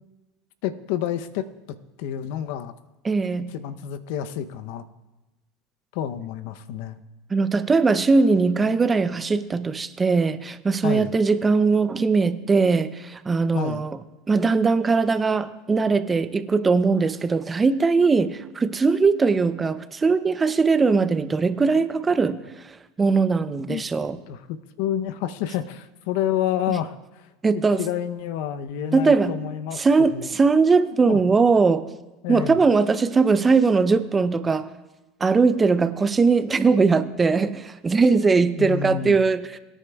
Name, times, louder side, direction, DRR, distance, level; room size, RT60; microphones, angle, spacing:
voice 1, 0.6-1.5 2.0-2.7 3.5-4.8 5.9-7.0 10.8-11.2 13.5-13.9 23.7-23.8 24.3-27.2 27.8-30.3 31.1-31.2 32.2-32.6 38.6-39.2, left 10 dB, 70° left, 0.7 m, -29 dB
voice 2, 3.0-3.5 7.3-14.0 14.3-22.4 23.0-24.2 27.4-27.8 28.9-29.4 29.8-31.9 32.3-34.7 35.2-39.5, right 4 dB, 20° right, 0.6 m, -20 dB
23.0 x 9.9 x 2.3 m
supercardioid pair, 110°, 0 cm